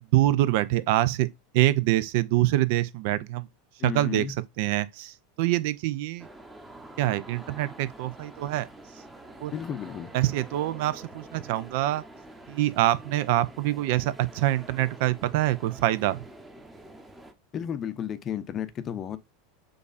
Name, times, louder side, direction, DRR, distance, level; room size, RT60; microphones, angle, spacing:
voice 1, 0.1-3.5 3.8-4.2 4.6-6.3 7.0-8.7 9.4-9.5 10.1-12.0 12.5-16.2, right 15 dB, 60° right, 0.3 m, -25 dB
voice 2, 3.8-4.3 9.5-10.1 17.5-19.2, left 9 dB, 35° left, 0.5 m, -33 dB
sound 1, 6.2-17.3, right 1 dB, 10° right, 0.8 m, -47 dB
6.5 x 2.4 x 2.4 m
hypercardioid pair, 85°, 0 cm